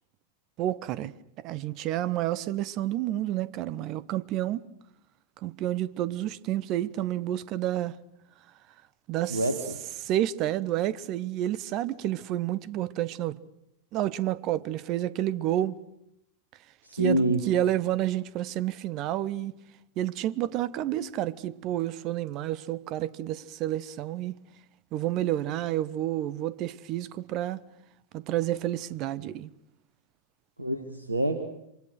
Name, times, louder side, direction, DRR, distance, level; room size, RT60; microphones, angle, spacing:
voice 1, 0.6-4.6 5.4-8.0 9.1-9.4 10.0-13.4 13.9-15.8 16.9-19.5 20.0-24.3 24.9-27.6 28.1-29.5, right 13 dB, 40° right, 1.0 m, -30 dB
voice 2, 9.3-9.8 16.8-17.4 30.6-31.4, right 1 dB, 80° right, 1.9 m, -26 dB
27.5 x 25.0 x 6.4 m
figure-of-eight pair, 90°, 0 cm